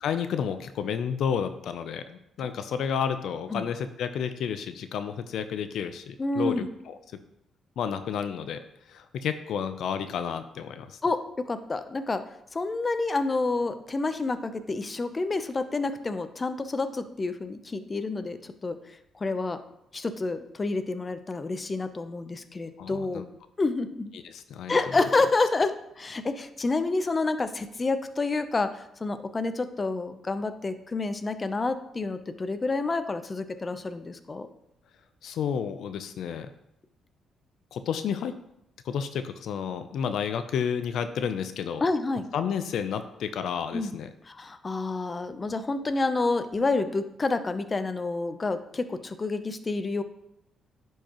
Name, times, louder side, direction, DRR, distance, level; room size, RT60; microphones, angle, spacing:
voice 1, 0.0-7.0 7.8-8.6 8.9-11.0 22.8-23.3 24.2-24.8 35.2-36.5 37.7-38.3 38.8-41.8 42.3-44.1, left 7 dB, 75° left, 10 dB, 0.5 m, -31 dB
voice 2, 6.2-6.7 11.0-12.2 12.5-18.8 19.1-19.6 19.9-23.2 23.6-24.1 24.7-34.5 41.8-42.3 43.7-43.9 44.3-50.0, left 3 dB, 30° left, 10 dB, 0.6 m, -29 dB
10.0 x 4.6 x 3.0 m, 0.80 s
cardioid pair, 90°, 0 cm